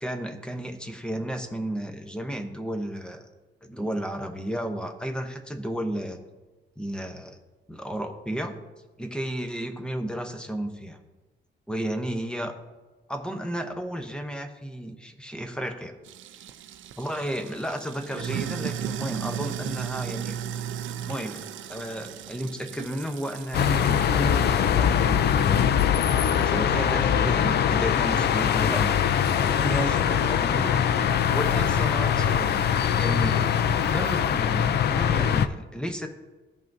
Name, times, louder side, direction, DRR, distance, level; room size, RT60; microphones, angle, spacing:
voice 1, 0.0-3.3 3.6-6.2 6.8-7.4 7.7-8.5 9.0-11.0 11.7-12.5 13.1-15.9 17.0-20.4 21.1-25.6 26.2-29.0 29.4-30.9 31.3-36.1, right 1 dB, 5° left, 5 dB, 0.8 m, -33 dB
Sink (filling or washing), 16.0-24.2, right 9 dB, 85° right, 0.5 m, -35 dB
sound 1, 23.5-35.5, left 8 dB, 60° left, 0.4 m, -22 dB
15.0 x 5.5 x 2.6 m, 1.2 s
cardioid pair, 140°, 20 cm